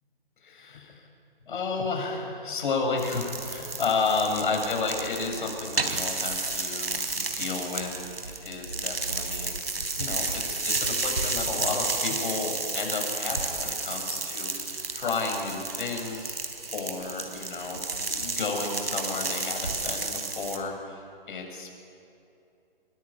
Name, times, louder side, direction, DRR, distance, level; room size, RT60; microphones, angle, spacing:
voice 1, 0.4-1.1 1.5-9.5 10.0-16.3 16.7-21.7, left 4 dB, 55° left, 2 dB, 7.5 m, -32 dB
sound 1, 3.0-20.6, right 3 dB, 85° right, 3.9 m, -32 dB
26.5 x 22.5 x 8.9 m, 2.7 s
figure-of-eight pair, 135°, 30 cm